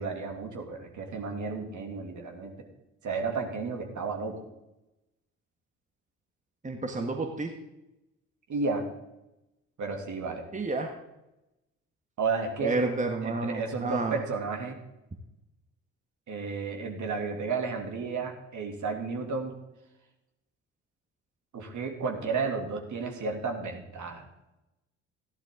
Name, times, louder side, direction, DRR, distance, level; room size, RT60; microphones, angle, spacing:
voice 1, 0.0-2.5 3.0-4.4 8.5-8.8 9.8-10.4 12.2-12.8 13.2-14.8 16.3-19.5 21.5-24.2, right 4 dB, 50° right, 2 dB, 2.7 m, -32 dB
voice 2, 6.6-7.5 10.5-10.9 12.6-14.2, right 3 dB, 20° right, 3 dB, 1.7 m, -30 dB
15.0 x 11.5 x 3.8 m, 0.93 s
figure-of-eight pair, 45°, 39 cm